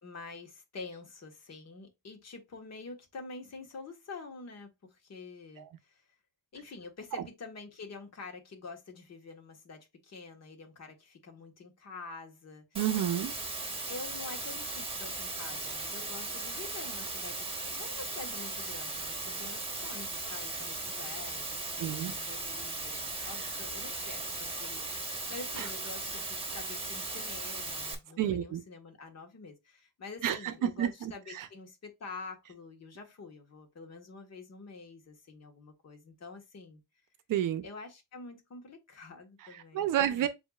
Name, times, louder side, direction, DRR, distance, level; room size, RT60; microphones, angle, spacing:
voice 1, 0.0-6.1 6.5-12.6 13.9-21.6 21.9-36.8 37.6-40.3, left 3 dB, 45° left, 1.5 m, -47 dB
voice 2, 12.7-13.3 21.8-22.1 23.2-23.3 25.6-25.7 28.2-28.6 30.2-31.5 37.3-37.6 39.5-40.3, right 11 dB, 60° right, 0.7 m, -30 dB
Water, 12.8-28.0, right 2 dB, 15° right, 1.3 m, -37 dB
7.6 x 2.8 x 2.4 m
cardioid pair, 95°, 36 cm